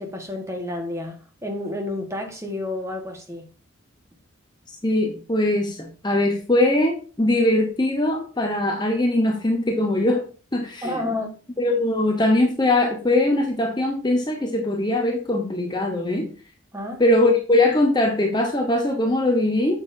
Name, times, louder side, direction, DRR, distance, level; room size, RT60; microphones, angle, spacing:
voice 1, 0.0-3.5 10.8-11.4 16.7-17.0, left 2 dB, 15° right, 1.4 m, -30 dB
voice 2, 4.8-10.2 10.5-11.0 11.6-16.3 17.0-19.8, left 1 dB, 20° left, 0.9 m, -21 dB
8.4 x 7.3 x 2.7 m
head